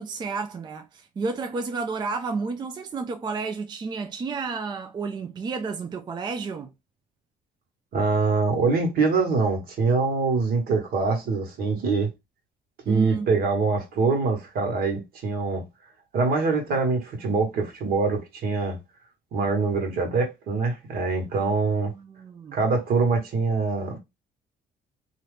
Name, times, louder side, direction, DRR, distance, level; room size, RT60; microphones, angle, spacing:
voice 1, 0.0-6.7 12.9-13.3 21.3-21.5 21.8-22.6, right 4 dB, 25° right, 0.4 m, -31 dB
voice 2, 7.9-12.1 12.9-15.6 16.1-18.8 19.3-21.9 22.5-24.0, right 4 dB, 65° right, 1.4 m, -24 dB
2.7 x 2.4 x 3.4 m
cardioid pair, 110°, 17 cm